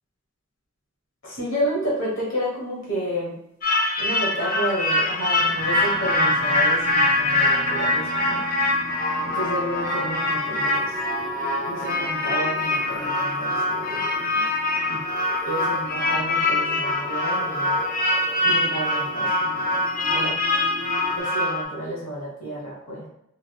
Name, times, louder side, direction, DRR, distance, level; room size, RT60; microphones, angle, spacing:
voice 1, 1.2-3.4 4.0-8.4 9.2-10.9 11.7-14.5 14.9-15.0 15.5-17.8 18.4-19.7 20.1-20.4 21.2-23.1, right 1 dB, 85° left, -5 dB, 1.0 m, -31 dB
sound 1, 3.6-21.6, left 2 dB, 45° left, 0.5 m, -24 dB
sound 2, 5.3-21.2, right 1 dB, 10° right, 0.7 m, -40 dB
3.1 x 3.0 x 2.2 m, 0.80 s
head